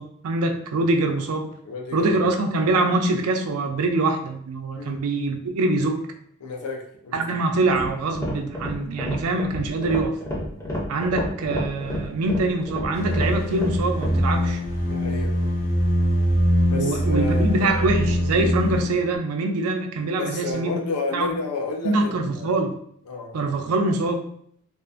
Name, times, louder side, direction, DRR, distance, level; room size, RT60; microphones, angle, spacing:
voice 1, 0.0-1.5 1.9-6.0 7.1-10.2 10.9-14.6 16.7-20.8 21.1-21.3 21.8-22.7 23.3-24.2, right 2 dB, 75° right, 5 dB, 0.4 m, -24 dB
voice 2, 1.6-2.1 4.7-5.0 6.4-7.4 14.8-15.3 16.7-17.9 20.2-22.5 23.1-23.3, left 3 dB, 90° left, 2 dB, 0.5 m, -31 dB
sound 1, 7.6-14.3, left 1 dB, 15° left, 0.5 m, -30 dB
sound 2, 12.9-18.9, equal, 65° left, 1.1 m, -23 dB
2.5 x 2.4 x 2.4 m, 0.66 s
head